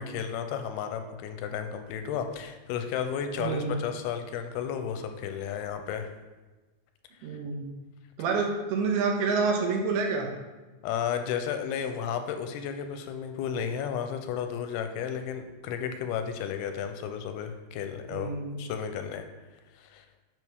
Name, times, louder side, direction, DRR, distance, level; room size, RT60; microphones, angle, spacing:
voice 1, 0.0-6.1 10.8-19.2 19.8-20.0, left 8 dB, 85° left, 7 dB, 2.5 m, -33 dB
voice 2, 3.4-3.7 7.2-7.7 8.2-10.3 18.1-18.6, right 4 dB, 85° right, 1 dB, 3.0 m, -28 dB
9.3 x 5.8 x 3.5 m, 1.2 s
omnidirectional pair, 4.5 m